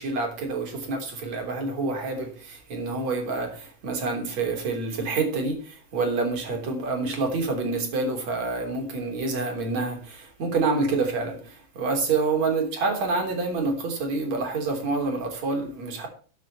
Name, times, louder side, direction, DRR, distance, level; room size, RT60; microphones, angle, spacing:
voice 1, 0.0-16.1, right 3 dB, 40° right, 3.9 m, -27 dB
13.0 x 8.7 x 4.2 m
omnidirectional pair, 5.7 m